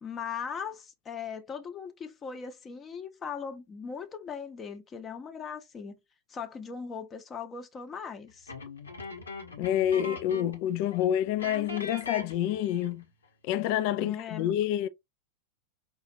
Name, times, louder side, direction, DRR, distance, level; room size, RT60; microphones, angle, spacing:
voice 1, 0.0-6.0 6.3-8.5 14.0-14.5, left 6 dB, 20° left, 0.8 m, -39 dB
sound 1, 8.5-10.7 10.9-11.0 11.4-13.0, left 3 dB, 75° left, 1.1 m, -40 dB
voice 2, 9.6-13.0 13.4-14.9, left 11 dB, 45° left, 0.4 m, -28 dB
5.0 x 2.4 x 2.7 m
figure-of-eight pair, 90°, 0 cm